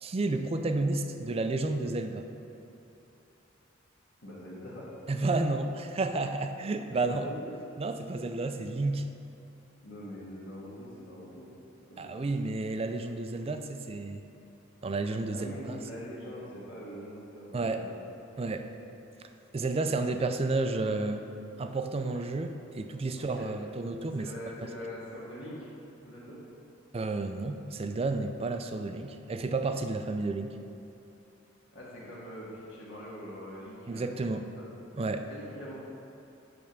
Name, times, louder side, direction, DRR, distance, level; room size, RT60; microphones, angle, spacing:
voice 1, 0.0-2.3 5.1-7.3 7.8-9.0 12.0-14.2 14.8-15.8 17.5-17.8 18.4-18.9 19.5-21.2 21.6-24.3 26.9-30.5 33.9-34.5 34.9-35.3, right 3 dB, 30° right, 7 dB, 0.4 m, -31 dB
voice 2, 4.2-4.9 7.0-7.5 9.8-12.3 15.3-18.0 18.3-18.4 22.1-22.2 23.2-23.5 24.1-25.7 26.0-26.4 31.7-34.6 35.3-35.8, equal, 75° left, -8 dB, 1.7 m, -44 dB
8.6 x 3.5 x 6.5 m, 2.9 s
head